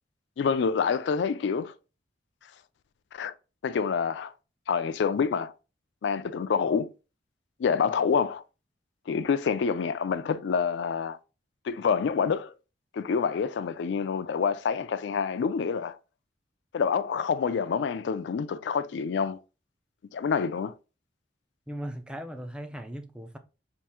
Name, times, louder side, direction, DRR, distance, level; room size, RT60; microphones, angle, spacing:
voice 1, 0.4-1.7 3.1-3.3 3.6-4.3 4.7-5.5 6.0-6.9 7.6-8.4 9.1-11.2 11.6-12.5 12.9-16.0 16.7-19.4 20.1-20.7, left 6 dB, 65° left, 0.3 m, -27 dB
voice 2, 21.7-23.4, equal, 5° right, 0.4 m, -38 dB
3.5 x 2.6 x 4.2 m
head